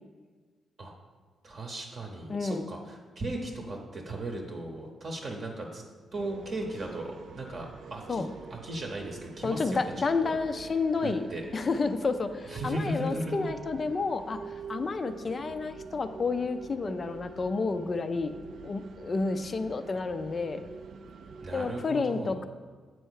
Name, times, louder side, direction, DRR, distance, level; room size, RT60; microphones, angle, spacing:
voice 1, 1.4-5.8 6.1-8.2 8.5-10.3 11.0-11.5 12.5-13.5 21.4-22.5, right 1 dB, 35° right, 1 dB, 0.8 m, -37 dB
voice 2, 2.3-2.7 8.1-8.3 9.4-11.2 11.5-14.4 14.7-18.3 18.6-20.6 21.5-22.5, left 4 dB, 30° left, 10 dB, 0.4 m, -30 dB
sound 1, 6.1-21.9, right 5 dB, 55° right, 0.4 m, -45 dB
8.3 x 4.5 x 6.3 m, 1.4 s
wide cardioid pair, 175°, 0 cm